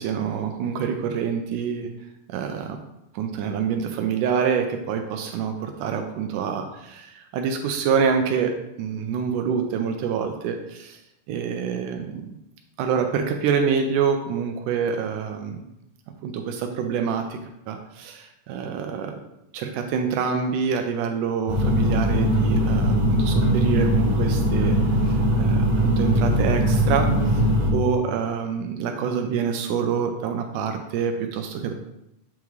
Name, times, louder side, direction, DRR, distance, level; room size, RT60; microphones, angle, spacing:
voice 1, 0.0-1.9 2.3-2.8 3.1-11.0 11.3-12.3 12.8-15.6 16.2-17.4 17.7-19.2 19.5-24.8 25.0-27.5 27.7-31.7, right 6 dB, 80° right, 5 dB, 2.1 m, -26 dB
sound 1, 21.5-27.7, equal, 50° right, 1.1 m, -20 dB
8.7 x 3.6 x 3.1 m, 0.84 s
omnidirectional pair, 3.7 m